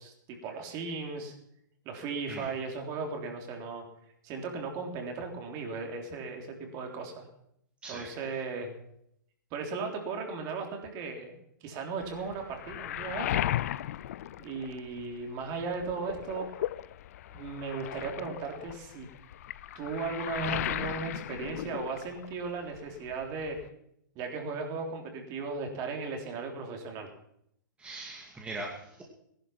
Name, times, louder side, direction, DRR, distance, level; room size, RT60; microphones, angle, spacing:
voice 1, 0.0-1.3 1.9-3.8 4.2-7.2 7.9-8.7 9.5-13.4 14.4-16.5 17.3-19.1 19.8-23.6 24.2-27.1, right 4 dB, 35° right, 3 dB, 3.5 m, -36 dB
Waves surf, 12.0-15.2 15.6-22.5 22.7-23.7, left 12 dB, 50° left, 0.6 m, -36 dB
voice 2, 27.8-29.0, right 2 dB, 10° right, -2 dB, 2.4 m, -40 dB
18.5 x 11.5 x 5.9 m, 0.75 s
figure-of-eight pair, 115°, 11 cm